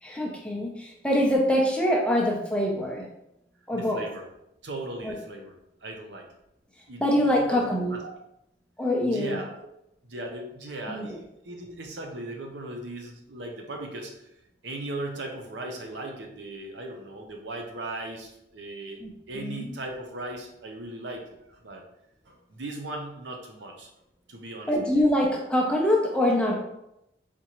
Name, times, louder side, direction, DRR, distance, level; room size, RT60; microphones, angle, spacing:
voice 1, 0.0-3.0 3.7-4.1 5.0-5.1 7.0-8.0 8.8-9.4 10.9-11.2 19.0-19.1 19.3-19.7 24.7-26.5, left 1 dB, 5° left, -1 dB, 0.6 m, -24 dB
voice 2, 3.7-4.3 4.6-5.5 5.8-6.3 6.9-7.6 7.9-8.1 9.1-9.5 10.0-14.1 14.6-19.0 19.3-21.2 21.5-21.8 22.3-23.9 24.3-25.1, right 2 dB, 85° right, 2 dB, 0.8 m, -38 dB
4.3 x 3.7 x 3.0 m, 0.83 s
head